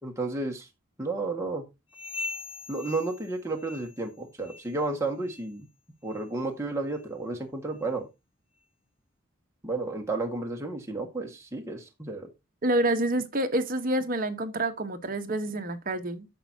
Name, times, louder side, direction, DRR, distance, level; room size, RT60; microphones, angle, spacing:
voice 1, 0.0-0.7 1.0-1.6 2.7-5.7 6.0-8.1 9.6-12.3, right 2 dB, 15° right, 1.7 m, -32 dB
sound 1, 1.9-4.1 4.4-4.8 5.2-5.5 6.1-6.2 6.9-7.0 7.7-7.8, left 3 dB, 65° left, 3.9 m, -41 dB
voice 2, 12.6-16.3, right 1 dB, 40° right, 1.1 m, -28 dB
11.0 x 7.3 x 2.8 m
head